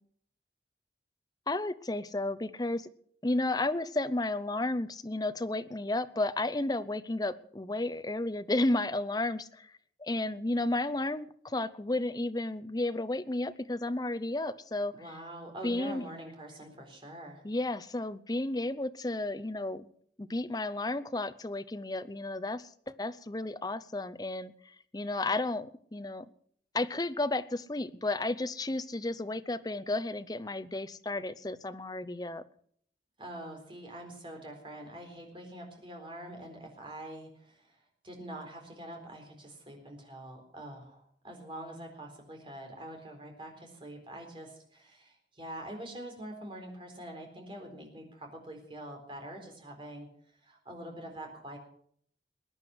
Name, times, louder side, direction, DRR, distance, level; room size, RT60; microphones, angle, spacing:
voice 1, 1.5-2.9 3.2-9.7 10.0-14.9 15.6-16.0 17.4-19.9 20.2-26.2 26.7-32.4, left 2 dB, 20° left, 12 dB, 0.7 m, -32 dB
voice 2, 14.9-17.4 33.2-50.1 50.4-51.6, right 1 dB, 30° right, 2 dB, 4.1 m, -45 dB
21.0 x 9.7 x 6.3 m, 0.63 s
head